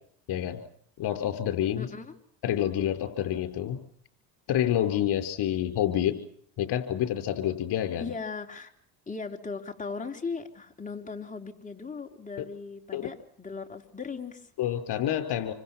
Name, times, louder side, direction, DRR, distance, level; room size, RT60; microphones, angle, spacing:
voice 1, 0.3-0.6 1.0-1.9 2.4-3.8 4.5-6.2 6.6-8.1 12.9-13.0 14.6-15.5, left 11 dB, 60° left, 7 dB, 4.9 m, -28 dB
voice 2, 1.8-2.1 8.0-8.7 9.1-14.5, left 4 dB, 15° left, 3 dB, 3.6 m, -38 dB
27.0 x 25.5 x 6.0 m, 0.64 s
supercardioid pair, 90°, 45 cm